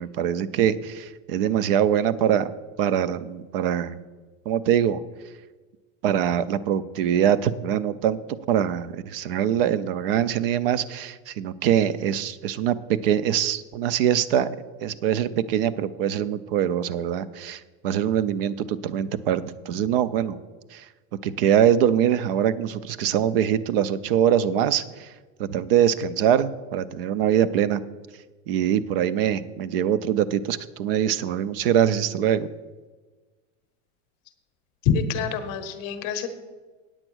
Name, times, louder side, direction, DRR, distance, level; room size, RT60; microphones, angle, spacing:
voice 1, 0.0-2.5 2.8-4.0 4.5-5.0 6.0-8.2 8.5-12.8 13.0-14.5 14.8-20.4 20.7-20.8 21.2-25.1 25.4-27.8 28.5-32.5, right 9 dB, 50° right, 17 dB, 0.5 m, -23 dB
voice 2, 34.8-36.3, left 7 dB, 30° left, 9 dB, 0.8 m, -25 dB
8.9 x 7.9 x 6.1 m, 1.3 s
supercardioid pair, 175°, 38 cm